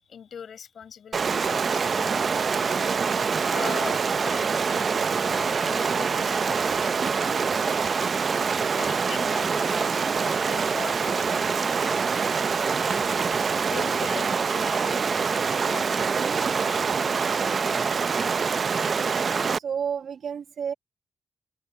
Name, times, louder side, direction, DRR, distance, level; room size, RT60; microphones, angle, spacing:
voice 1, 0.0-7.8 8.1-8.2 8.6-12.1 12.6-17.7, left 7 dB, 70° left, 6.7 m, -42 dB
Stream, 1.1-19.6, right 5 dB, 55° right, 0.6 m, -25 dB
voice 2, 18.4-18.8 19.5-20.7, right 7 dB, 75° right, 1.3 m, -32 dB
open air
cardioid pair, 60°, 0 cm